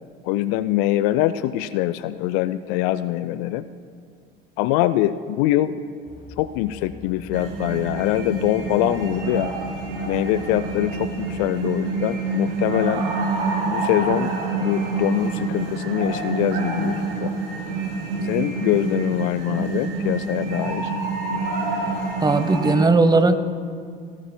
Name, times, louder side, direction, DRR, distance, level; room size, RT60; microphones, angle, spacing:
voice 1, 0.2-3.6 4.6-5.8 6.4-9.5 10.0-13.1 13.7-17.3 18.2-20.9, left 14 dB, 55° left, 15 dB, 0.5 m, -23 dB
sound 1, 6.1-11.5, left 5 dB, 30° left, 1.5 m, -44 dB
sound 2, 7.3-22.8, right 3 dB, 70° right, 2.7 m, -27 dB
voice 2, 22.2-23.4, right 3 dB, 15° right, 10 dB, 0.8 m, -17 dB
19.0 x 18.0 x 2.2 m, 2.2 s
figure-of-eight pair, 70°, 29 cm